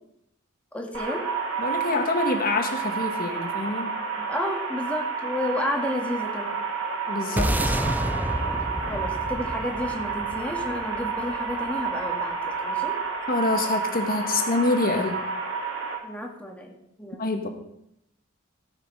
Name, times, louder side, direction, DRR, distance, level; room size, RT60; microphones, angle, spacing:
voice 1, 0.7-1.3 4.2-6.6 8.9-13.0 16.0-17.2, left 1 dB, 5° left, 1 dB, 1.9 m, -31 dB
sound 1, 0.9-15.9, right 5 dB, 70° right, 2.7 m, -30 dB
voice 2, 1.6-3.9 7.1-7.7 13.3-15.2 17.2-17.5, left 2 dB, 45° left, 4 dB, 1.7 m, -26 dB
sound 2, 7.4-11.8, right 1 dB, 10° right, 0.5 m, -29 dB
17.0 x 5.8 x 5.6 m, 0.81 s
head